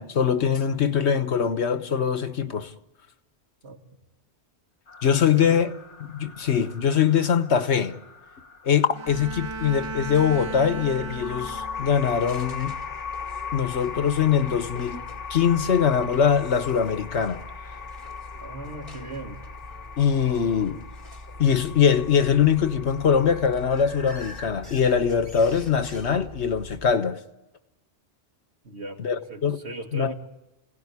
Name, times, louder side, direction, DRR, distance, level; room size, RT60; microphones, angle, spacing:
voice 1, 0.0-2.7 5.0-5.7 6.1-8.0 8.6-12.8 13.5-17.4 20.0-20.8 21.4-27.2 29.0-29.6 29.9-30.1, left 7 dB, 70° left, 1.4 m, -22 dB
sound 1, 4.9-24.5, left 6 dB, 90° left, 1.6 m, -40 dB
Bowed string instrument, 8.9-12.1, right 3 dB, 25° right, 0.9 m, -35 dB
sound 2, 9.0-26.9, left 1 dB, 50° right, 4.0 m, -43 dB
voice 2, 18.4-19.4 28.6-30.1, right 2 dB, 65° right, 2.7 m, -38 dB
29.5 x 17.5 x 9.7 m
omnidirectional pair, 1.2 m